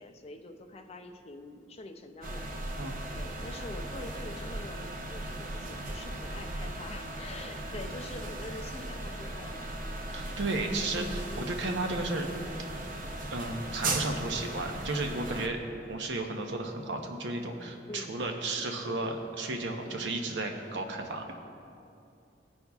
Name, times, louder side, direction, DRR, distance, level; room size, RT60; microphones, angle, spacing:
voice 1, 0.0-2.8 3.1-9.7 11.3-11.7 17.9-18.2 19.8-20.1, left 2 dB, 35° left, 5 dB, 0.4 m, -45 dB
sound 1, 2.2-15.5, right 2 dB, 50° right, 0.6 m, -37 dB
voice 2, 10.1-12.3 13.3-15.6 15.9-21.3, right 2 dB, 75° right, 3 dB, 0.8 m, -33 dB
15.5 x 5.3 x 2.3 m, 2.6 s
head